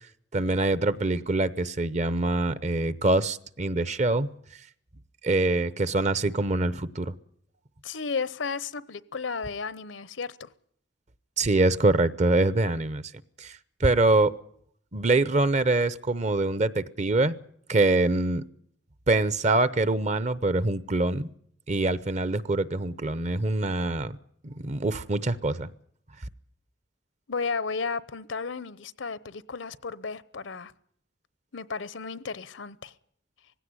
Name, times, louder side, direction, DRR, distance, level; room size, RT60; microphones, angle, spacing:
voice 1, 0.3-4.3 5.2-7.1 11.4-13.0 13.4-14.3 14.9-17.4 17.7-18.4 19.1-21.3 21.7-24.2 24.4-25.7, right 2 dB, 40° right, 0.8 m, -24 dB
voice 2, 7.8-10.5 27.3-30.7 31.5-32.9, left 4 dB, 80° left, 0.9 m, -33 dB
19.0 x 16.5 x 9.7 m
head